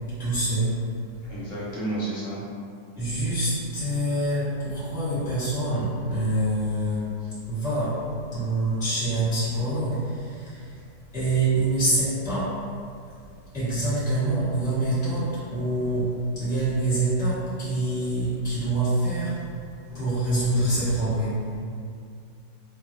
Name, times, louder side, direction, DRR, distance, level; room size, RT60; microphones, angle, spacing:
voice 1, 0.2-0.9 3.0-10.7 11.1-12.6 13.5-19.4 19.9-21.5, right 1 dB, 5° right, -15 dB, 0.6 m, -26 dB
voice 2, 1.2-2.4, right 2 dB, 75° left, -8 dB, 1.3 m, -31 dB
3.1 x 2.1 x 2.5 m, 2.3 s
omnidirectional pair, 2.1 m